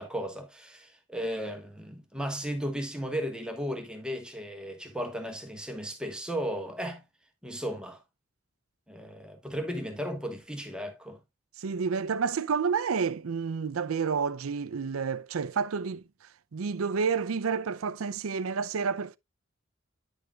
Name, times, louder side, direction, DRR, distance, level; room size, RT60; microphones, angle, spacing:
voice 1, 0.0-7.0 7.4-8.0 8.9-11.2, equal, 5° right, 1.3 m, -35 dB
voice 2, 11.6-16.0 16.5-19.2, right 5 dB, 90° right, 0.5 m, -29 dB
10.0 x 6.9 x 2.3 m
head